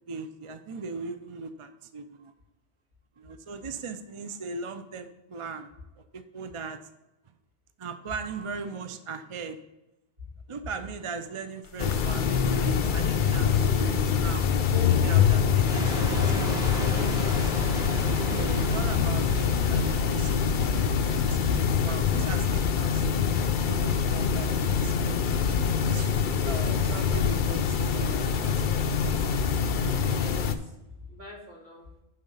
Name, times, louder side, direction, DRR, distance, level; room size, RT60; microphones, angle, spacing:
voice 1, 0.0-2.3 3.2-5.7 6.1-6.8 7.8-9.6 10.5-14.5 14.9-17.5 18.2-23.1 23.7-25.6 25.9-26.1 26.4-28.8, right 4 dB, 40° right, 9 dB, 0.4 m, -39 dB
sound 1, 11.8-27.7, left 8 dB, 80° left, 1.0 m, -30 dB
sound 2, 11.8-30.5, left 6 dB, 55° left, 0.7 m, -26 dB
voice 2, 14.7-15.1 26.3-26.8 30.0-30.5 31.1-31.9, left 3 dB, 70° right, -4 dB, 2.8 m, -38 dB
sound 3, 15.7-21.6, right 1 dB, 5° right, 1.7 m, -35 dB
9.4 x 3.9 x 5.4 m, 0.98 s
omnidirectional pair, 1.2 m